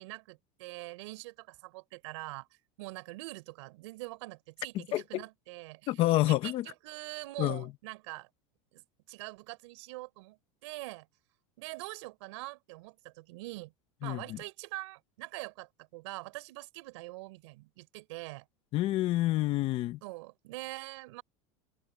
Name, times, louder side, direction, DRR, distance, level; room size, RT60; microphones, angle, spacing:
voice 1, 0.0-2.5 2.8-5.9 6.2-8.3 8.7-11.1 11.6-13.7 14.0-18.4 20.0-21.2, right 22 dB, 70° right, 4.3 m, -44 dB
voice 2, 4.9-5.2 5.9-6.6 7.4-7.7 14.0-14.4 18.7-20.0, left 16 dB, 40° left, 0.9 m, -28 dB
supercardioid pair, 160°, 15 cm